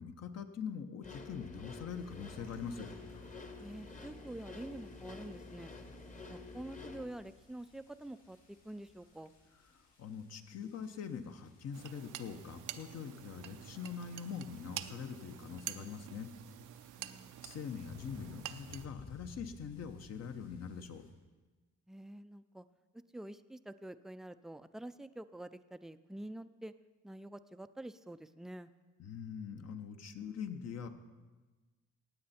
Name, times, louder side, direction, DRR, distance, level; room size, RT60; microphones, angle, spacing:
voice 1, 0.0-2.9 10.0-16.3 17.4-21.0 29.0-30.9, left 7 dB, 55° left, 8 dB, 1.0 m, -43 dB
sound 1, 1.0-7.1, left 3 dB, 25° left, 1.1 m, -49 dB
sound 2, 1.9-21.1, left 3 dB, 75° left, 4.5 m, -59 dB
voice 2, 3.6-5.7 6.3-8.4 8.6-9.3 17.0-17.3 21.9-22.6 23.1-26.7 27.0-28.7, right 1 dB, ahead, 12 dB, 0.4 m, -47 dB
sound 3, 11.7-18.9, right 12 dB, 80° right, 0.6 m, -48 dB
16.0 x 9.0 x 4.3 m, 1.3 s
cardioid pair, 90°, 30 cm